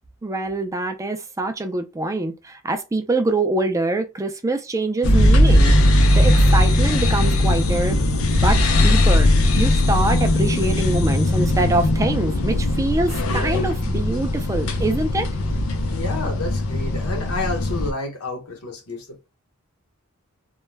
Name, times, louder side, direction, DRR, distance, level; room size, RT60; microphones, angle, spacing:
voice 1, 0.2-5.8 6.1-8.0 8.4-9.3 9.6-15.3, right 2 dB, 15° right, 0.3 m, -24 dB
sound 1, 5.0-17.9, left 1 dB, 70° left, 0.5 m, -19 dB
voice 2, 15.9-19.4, left 3 dB, 85° left, 0.9 m, -30 dB
2.2 x 2.0 x 3.2 m
head